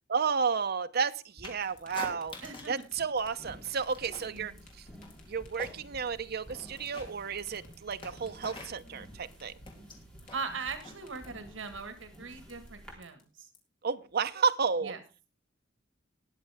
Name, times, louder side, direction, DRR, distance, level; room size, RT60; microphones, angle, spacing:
voice 1, 0.1-2.3 2.7-4.5 4.8-4.9 5.3-9.5 13.8-14.9, right 5 dB, 55° right, 10 dB, 0.8 m, -32 dB
sound 1, 1.4-13.6, left 1 dB, 45° left, 3.8 m, -53 dB
sound 2, 1.4-2.8 3.1-4.4 4.7-6.1 6.4-11.8, left 2 dB, 25° left, 3.0 m, -47 dB
voice 2, 2.4-2.8 4.1-4.6 10.3-13.5 14.8-15.0, right 4 dB, 85° right, 8 dB, 1.7 m, -40 dB
sound 3, 3.2-12.9, right 1 dB, 5° left, 3.6 m, -54 dB
20.0 x 7.5 x 3.5 m, 0.32 s
head